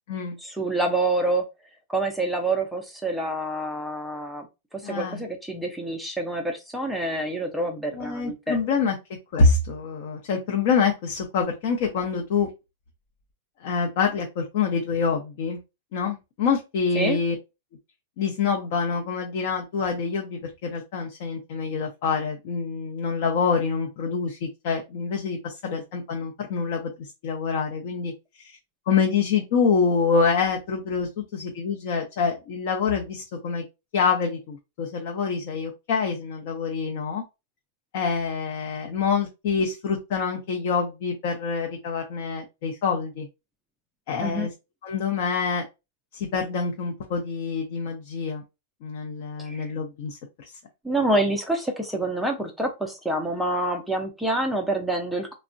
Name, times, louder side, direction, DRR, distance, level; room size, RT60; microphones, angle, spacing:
voice 1, 0.4-1.4 1.9-4.5 4.7-8.6 17.0-17.2 44.2-44.5 49.4-49.7 50.8-55.4, right 2 dB, ahead, 2 dB, 0.4 m, -27 dB
voice 2, 4.8-5.2 7.9-9.0 9.3-12.5 13.6-15.6 15.9-17.4 18.2-28.1 28.9-33.6 33.9-37.2 37.9-43.3 44.1-44.5 44.8-45.7 46.1-48.4 48.8-50.2, left 5 dB, 55° left, 2 dB, 0.6 m, -26 dB
3.4 x 2.0 x 2.5 m, 0.25 s
supercardioid pair, 160°, 0 cm